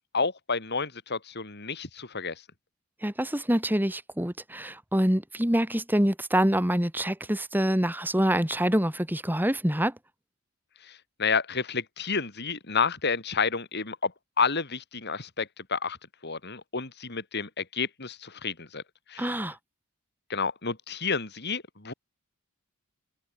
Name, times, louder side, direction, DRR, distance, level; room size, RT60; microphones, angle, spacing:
voice 1, 0.1-2.4 10.8-14.1 14.4-16.0 16.2-18.8 19.1-19.3 20.3-21.9, left 5 dB, 50° left, 4.2 m, -30 dB
voice 2, 3.0-9.9 19.2-19.6, equal, 10° right, 3.1 m, -26 dB
head